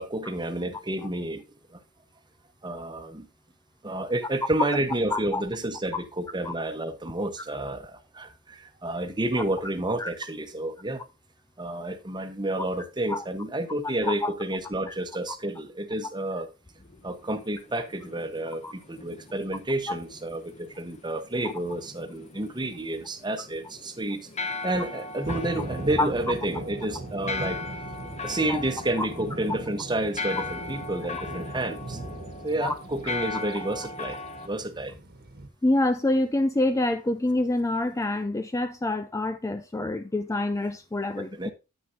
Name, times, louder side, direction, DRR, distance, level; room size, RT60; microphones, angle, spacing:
voice 1, 0.0-1.4 1.7-1.8 2.6-3.3 3.8-11.0 11.6-16.5 17.0-27.6 28.2-32.0 32.4-34.2 34.4-34.9 41.2-41.5, right 1 dB, 20° right, 1.1 m, -30 dB
voice 2, 5.1-5.4 6.4-6.5 10.0-10.1 13.1-13.2 14.0-14.3 14.9-15.0 18.6-18.7 19.9-20.0 26.0-26.1 28.5-28.6 29.0-29.1 32.6-32.7 35.6-41.5, left 2 dB, 15° left, 0.4 m, -26 dB
sound 1, 16.8-34.5, left 3 dB, 30° left, 1.0 m, -39 dB
sound 2, 25.2-35.5, right 1 dB, 45° right, 1.4 m, -39 dB
9.7 x 9.3 x 2.7 m
head